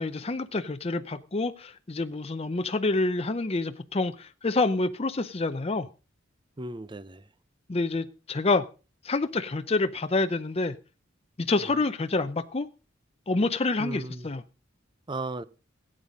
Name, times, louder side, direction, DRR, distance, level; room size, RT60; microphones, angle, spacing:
voice 1, 0.0-5.9 7.7-8.6 9.0-10.7 11.4-12.7 13.3-14.4, left 3 dB, 30° left, 0.6 m, -27 dB
voice 2, 6.6-7.2 11.6-11.8 13.8-14.3 15.1-15.4, right 2 dB, 25° right, 0.7 m, -36 dB
17.0 x 8.9 x 5.2 m
head